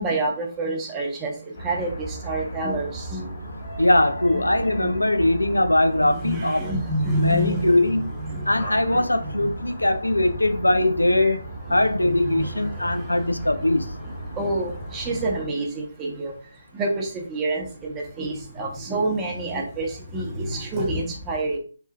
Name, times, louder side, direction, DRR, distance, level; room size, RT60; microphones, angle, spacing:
voice 1, 0.0-3.4 4.8-4.9 6.0-8.5 8.9-9.5 11.2-11.3 11.7-13.3 13.6-13.7 14.0-16.3 16.7-21.6, right 2 dB, 15° right, 0.7 m, -28 dB
sound 1, 1.5-15.5, right 1 dB, 45° left, 1.4 m, -35 dB
voice 2, 3.8-6.7 7.2-8.1 8.5-11.4 11.7-13.9, left 1 dB, 85° left, 0.4 m, -21 dB
3.5 x 2.6 x 2.2 m
figure-of-eight pair, 145°, 0 cm